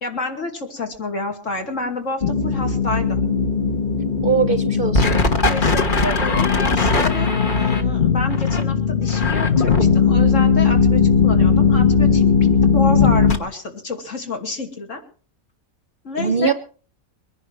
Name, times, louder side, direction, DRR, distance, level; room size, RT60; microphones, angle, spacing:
voice 1, 0.0-3.3 5.5-15.0 16.0-16.5, left 2 dB, 55° left, 3 dB, 2.9 m, -29 dB
sound 1, 2.2-13.4, left 5 dB, 35° left, 1.5 m, -17 dB
voice 2, 4.2-5.2 16.2-16.5, right 6 dB, 45° right, 11 dB, 0.9 m, -21 dB
23.0 x 10.5 x 4.6 m, 0.40 s
omnidirectional pair, 1.5 m